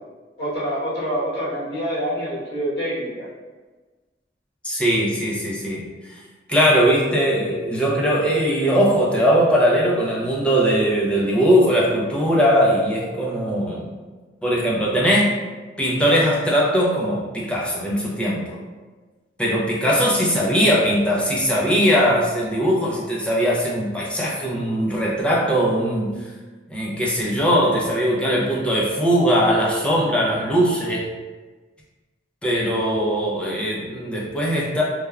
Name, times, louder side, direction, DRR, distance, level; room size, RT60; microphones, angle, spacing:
voice 1, 0.4-3.3, equal, 75° left, -7 dB, 1.1 m, -26 dB
voice 2, 4.6-5.8 6.1-6.2 6.5-13.9 14.4-15.4 15.8-18.6 19.4-26.1 26.7-31.1 32.4-34.8, equal, 5° left, -5 dB, 0.5 m, -20 dB
3.2 x 2.2 x 2.2 m, 1.3 s
head